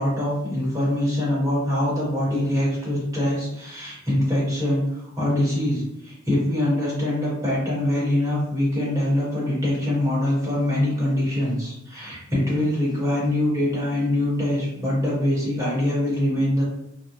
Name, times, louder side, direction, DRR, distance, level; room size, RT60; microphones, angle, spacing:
voice 1, 0.0-4.9 5.2-16.6, left 1 dB, 15° right, -7 dB, 1.0 m, -23 dB
2.3 x 2.1 x 2.7 m, 0.79 s
head